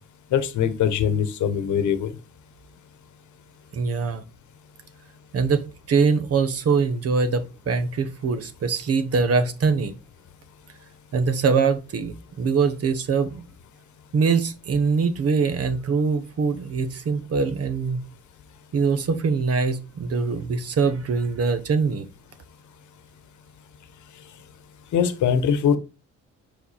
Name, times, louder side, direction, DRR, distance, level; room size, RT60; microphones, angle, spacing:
voice 1, 0.3-2.1 24.9-25.8, left 8 dB, 75° left, 12 dB, 1.1 m, -22 dB
voice 2, 3.7-4.2 5.3-9.9 11.1-13.4 14.1-18.0 18.7-22.1, right 5 dB, 50° right, 11 dB, 1.1 m, -23 dB
5.9 x 5.1 x 4.2 m, 0.29 s
cardioid pair, 90°, 30 cm